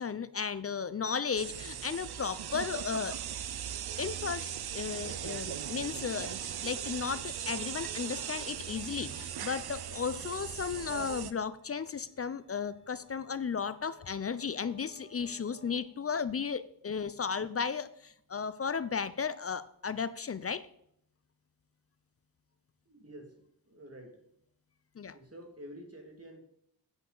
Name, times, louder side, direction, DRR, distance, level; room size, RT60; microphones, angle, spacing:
voice 1, 0.0-3.2 4.0-20.7 25.0-25.1, left 6 dB, 35° left, 15 dB, 0.4 m, -35 dB
sound 1, 1.4-11.3, right 9 dB, 70° right, 0.6 m, -39 dB
sound 2, 5.2-15.8, left 1 dB, 55° left, 2.5 m, -62 dB
voice 2, 22.9-24.3 25.0-26.4, equal, 35° right, 3 dB, 1.9 m, -49 dB
8.1 x 8.1 x 3.8 m, 0.70 s
wide cardioid pair, 90°, 40 cm